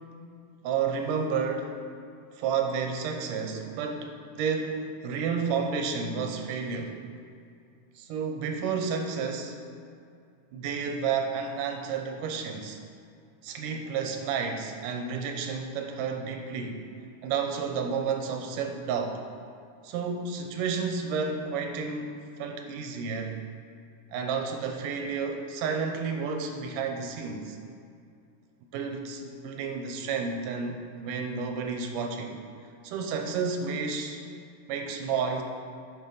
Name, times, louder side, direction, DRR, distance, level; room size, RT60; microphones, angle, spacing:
voice 1, 0.6-1.8 2.4-7.0 8.0-9.6 10.5-12.8 13.4-16.8 17.2-19.2 19.8-23.4 24.1-27.6 28.7-32.4 32.8-34.2 34.7-35.4, right 5 dB, 85° right, 4 dB, 2.3 m, -31 dB
11.0 x 5.9 x 3.9 m, 2.4 s
omnidirectional pair, 3.7 m